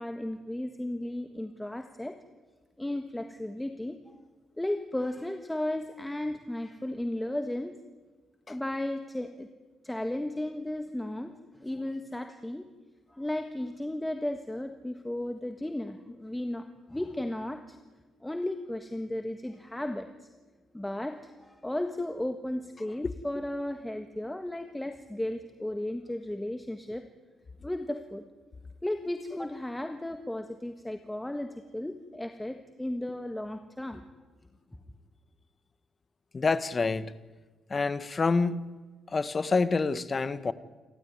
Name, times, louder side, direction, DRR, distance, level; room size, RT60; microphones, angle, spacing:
voice 1, 0.0-2.2 2.8-4.1 4.6-7.7 8.5-9.5 9.8-12.6 13.1-17.8 18.2-20.1 20.7-27.0 27.6-28.2 28.8-34.0, left 1 dB, 10° left, 1.5 m, -34 dB
voice 2, 36.3-37.1 37.7-38.7 39.1-40.5, left 4 dB, 30° left, 1.3 m, -27 dB
29.0 x 13.5 x 9.5 m
cardioid pair, 90°, 0 cm